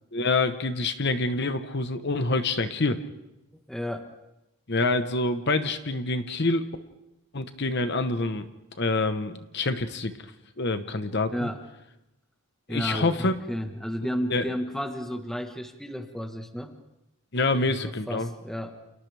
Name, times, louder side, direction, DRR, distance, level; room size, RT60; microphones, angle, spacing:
voice 1, 0.1-3.0 4.7-6.7 7.3-8.5 8.8-10.1 10.6-11.5 12.7-13.4 14.3-14.5 17.3-18.3, left 3 dB, 50° left, 9 dB, 1.1 m, -26 dB
voice 2, 3.5-4.1 11.3-11.6 12.7-16.7 17.6-18.8, equal, ahead, 5 dB, 1.4 m, -33 dB
29.0 x 28.5 x 3.5 m, 0.91 s
head